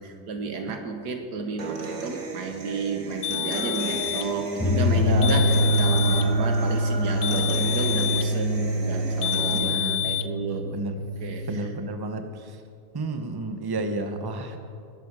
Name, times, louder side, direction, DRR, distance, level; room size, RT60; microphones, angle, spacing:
voice 1, 0.0-10.8 11.2-11.7, right 4 dB, 85° right, 5 dB, 1.8 m, -32 dB
Human voice / Acoustic guitar, 1.6-9.6, right 3 dB, 55° right, 2.0 m, -35 dB
sound 1, 3.2-4.3 5.2-6.3 7.2-8.4 9.2-10.3, left 17 dB, 85° left, 1.2 m, -29 dB
sound 2, 4.6-11.5, equal, 5° left, 1.7 m, -25 dB
voice 2, 5.0-5.6 9.5-10.1 10.7-11.1 11.5-12.5 12.9-14.6, right 2 dB, 20° right, 7 dB, 0.7 m, -31 dB
20.0 x 11.0 x 4.8 m, 2.4 s
omnidirectional pair, 1.7 m